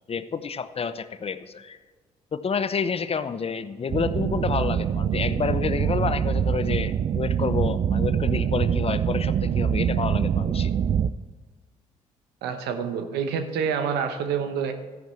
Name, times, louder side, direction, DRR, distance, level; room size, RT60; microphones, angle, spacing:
voice 1, 0.1-1.8 2.3-10.7, left 5 dB, 35° left, 13 dB, 0.7 m, -29 dB
sound 1, 3.9-11.1, right 8 dB, 40° right, 0.4 m, -24 dB
voice 2, 12.4-14.7, right 7 dB, 70° right, 8 dB, 1.0 m, -27 dB
13.0 x 10.5 x 3.2 m, 1.5 s
hypercardioid pair, 45°, 17 cm